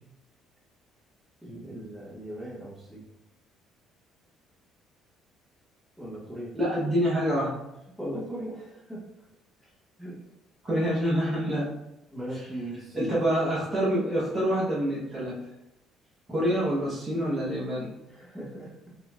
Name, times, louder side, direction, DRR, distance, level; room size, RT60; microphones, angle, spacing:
voice 1, 1.4-3.0 6.0-6.5 8.0-9.0 9.6-9.7 10.0-10.2 12.1-13.1 18.1-18.9, right 1 dB, ahead, -7 dB, 1.5 m, -38 dB
voice 2, 6.5-7.5 10.6-11.8 12.9-15.4 16.3-17.9, equal, 20° right, -7 dB, 1.2 m, -26 dB
4.1 x 2.8 x 2.5 m, 0.90 s
cardioid pair, 100°, 0 cm